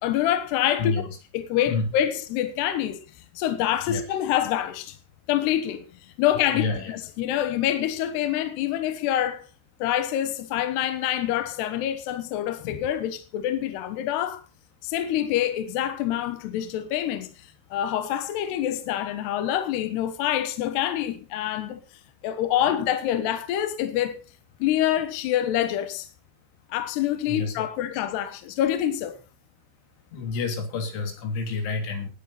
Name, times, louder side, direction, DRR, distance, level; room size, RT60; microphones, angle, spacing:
voice 1, 0.0-0.9 1.3-3.0 3.4-5.0 5.3-5.8 6.2-9.5 9.8-14.4 14.8-17.3 17.7-21.8 22.2-24.2 24.6-26.1 26.7-29.2, left 11 dB, 70° left, 3.1 m, -26 dB
voice 2, 6.6-6.9 27.3-27.7 30.1-32.1, left 4 dB, 85° left, 5.5 m, -28 dB
19.5 x 9.2 x 4.1 m
omnidirectional pair, 5.3 m